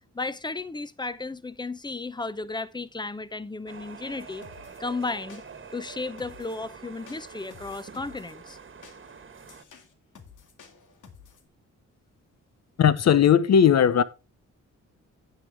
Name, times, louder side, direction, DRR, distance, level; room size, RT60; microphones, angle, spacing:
voice 1, 0.1-4.4 4.8-5.4 5.7-8.6, left 3 dB, 15° left, 0.7 m, -34 dB
sound 1, 3.7-9.6, right 5 dB, 40° right, 1.5 m, -46 dB
sound 2, 4.4-4.8 5.3-5.7 6.2-6.6 7.1-8.3 8.8-11.5, left 6 dB, 90° left, 2.3 m, -52 dB
voice 2, 12.8-14.0, left 8 dB, 60° left, 0.9 m, -18 dB
9.7 x 9.5 x 3.5 m
cardioid pair, 115°, 30 cm